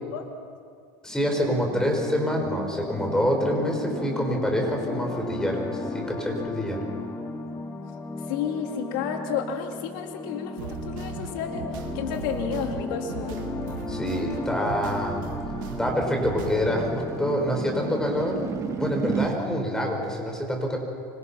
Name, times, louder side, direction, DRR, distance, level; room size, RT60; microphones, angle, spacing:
voice 1, 1.0-6.8 13.9-15.2 15.8-18.4 18.8-20.8, equal, 5° left, 2 dB, 5.7 m, -26 dB
sound 1, 1.1-18.4, left 3 dB, 25° left, 2.6 m, -35 dB
voice 2, 8.3-13.5, left 7 dB, 75° left, 3 dB, 3.5 m, -31 dB
sound 2, 10.6-16.8, right 8 dB, 80° right, 3.0 m, -38 dB
sound 3, 13.4-19.4, right 6 dB, 30° right, 2.3 m, -35 dB
26.0 x 26.0 x 5.9 m, 2.2 s
supercardioid pair, 125°, 11 cm